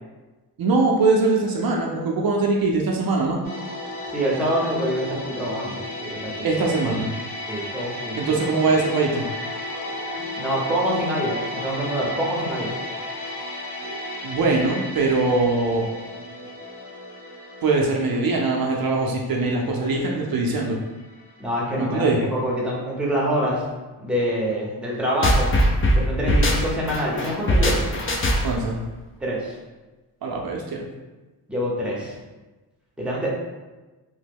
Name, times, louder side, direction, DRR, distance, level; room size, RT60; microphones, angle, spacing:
voice 1, 0.6-3.4 6.4-7.1 8.2-9.2 14.2-15.8 17.6-20.8 21.8-22.2 28.4-28.8 30.2-30.9, right 3 dB, 60° right, -1 dB, 0.5 m, -22 dB
sound 1, 3.4-22.3 22.5-22.7, left 1 dB, 55° left, 1.2 m, -34 dB
voice 2, 4.1-6.7 7.5-8.6 10.4-12.8 21.4-23.7 24.0-25.5 25.9-27.9 29.2-29.6 31.5-32.1 33.0-33.3, equal, 5° right, -4 dB, 0.7 m, -26 dB
sound 2, 25.2-28.7, equal, 30° left, 0.4 m, -20 dB
2.9 x 2.1 x 3.4 m, 1.2 s
cardioid pair, 105°, 42 cm